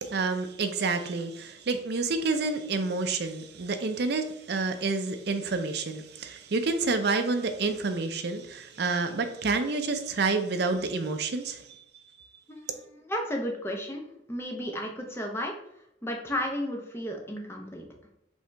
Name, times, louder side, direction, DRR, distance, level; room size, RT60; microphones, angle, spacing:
voice 1, 0.0-11.8, right 3 dB, 55° right, 0.5 m, -29 dB
voice 2, 12.5-15.6 16.0-17.8, equal, 15° left, 0.7 m, -33 dB
5.3 x 2.9 x 3.4 m
head